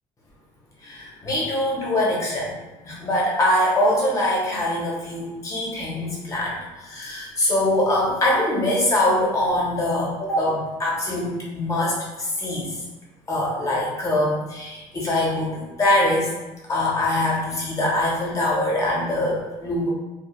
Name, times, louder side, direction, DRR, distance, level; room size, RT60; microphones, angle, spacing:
voice 1, 0.8-2.5 2.8-12.8 13.3-16.3 16.7-19.9, left 1 dB, 25° left, -4 dB, 0.7 m, -23 dB
2.4 x 2.0 x 3.0 m, 1.1 s
cardioid pair, 155°, 13 cm